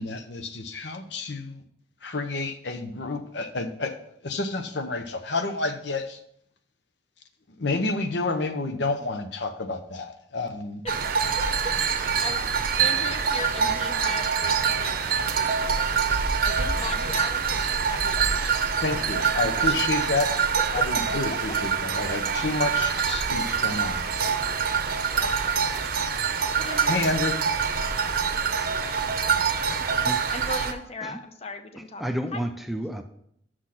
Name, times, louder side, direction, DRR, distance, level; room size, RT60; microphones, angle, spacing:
voice 1, 0.0-1.6 2.0-3.9 4.2-6.2 7.6-10.8 18.8-20.3 20.7-24.0 26.9-27.4, left 3 dB, 70° left, 8 dB, 0.8 m, -29 dB
sound 1, 10.9-30.7, right 6 dB, 55° right, 0.8 m, -25 dB
voice 2, 11.9-16.1 16.4-18.6 19.0-20.1 20.7-21.2 21.5-21.6 25.2-25.6 26.5-27.0 30.3-32.0 32.3-32.4, left 3 dB, 35° left, 8 dB, 0.7 m, -38 dB
voice 3, 29.7-30.2 31.0-31.2 31.8-33.0, equal, ahead, 6 dB, 0.5 m, -32 dB
6.3 x 6.2 x 5.9 m, 0.70 s
head